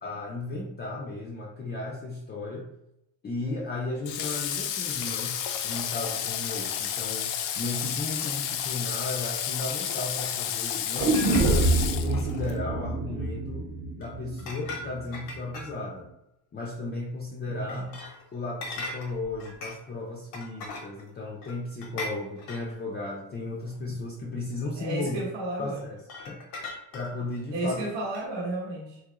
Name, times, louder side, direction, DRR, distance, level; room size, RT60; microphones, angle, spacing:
voice 1, 0.0-2.7 3.2-11.7 12.1-13.7 14.0-16.1 16.5-17.9 18.3-25.2 25.6-26.0 26.3-26.4 26.9-27.9, left 2 dB, 25° left, -3 dB, 0.5 m, -35 dB
Water / Water tap faucet, 4.1-12.6, left 9 dB, 70° left, 0.5 m, -31 dB
sound 1, 11.0-15.0 15.3-15.4, right 2 dB, 30° right, 0.8 m, -26 dB
sound 2, 11.1-11.7 14.0-14.1 14.4-16.0 17.7-18.2 18.6-19.9 20.3-21.1 21.4-22.8 23.7-23.8 26.0-27.3 28.1-28.2, left 2 dB, 85° left, 1.0 m, -39 dB
voice 2, 17.5-18.0 24.8-25.9 27.5-29.0, right 2 dB, 75° right, -2 dB, 0.9 m, -33 dB
3.0 x 2.4 x 2.9 m, 0.83 s
cardioid pair, 95°, 45 cm